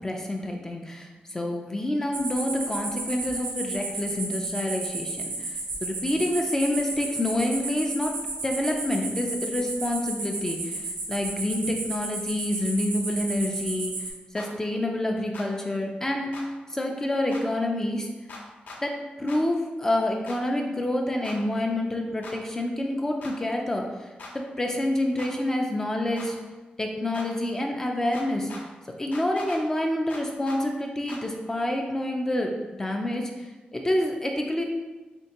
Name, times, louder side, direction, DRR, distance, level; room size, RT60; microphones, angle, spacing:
voice 1, 0.0-8.1 8.4-18.1 18.8-24.1 24.3-26.4 26.8-28.5 29.0-34.6, left 1 dB, 15° left, 1 dB, 0.3 m, -28 dB
sound 1, 2.1-14.1, right 2 dB, 90° right, 0.7 m, -33 dB
sound 2, 14.4-14.5 15.3-15.5 16.3-16.5 17.3-17.4 18.3-18.8 19.3-19.4 20.3-20.4 21.2-21.4 22.2-22.4 23.2-23.4 24.2-24.3 25.2-25.3 26.2-26.3 27.1-27.3 28.1-28.6 29.1-29.6 30.1-30.6 31.1-31.2, left 3 dB, 70° left, 0.6 m, -41 dB
4.3 x 3.1 x 2.8 m, 1.2 s
wide cardioid pair, 175°, 3 cm